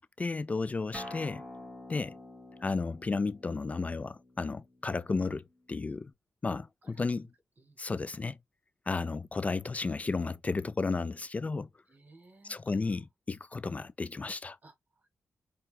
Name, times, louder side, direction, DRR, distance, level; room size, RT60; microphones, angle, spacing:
voice 1, 0.0-1.4 1.9-2.2 2.6-6.1 6.4-7.3 7.8-8.4 8.9-11.7 12.4-13.0 13.3-14.6, left 4 dB, 30° left, 0.3 m, -33 dB
Acoustic guitar, 0.9-6.1, left 1 dB, ahead, 3.7 m, -48 dB
voice 2, 6.8-7.3 7.6-7.8 11.9-12.8 14.6-15.2, right 2 dB, 35° right, 1.7 m, -59 dB
5.8 x 3.4 x 2.2 m
wide cardioid pair, 110°, 5 cm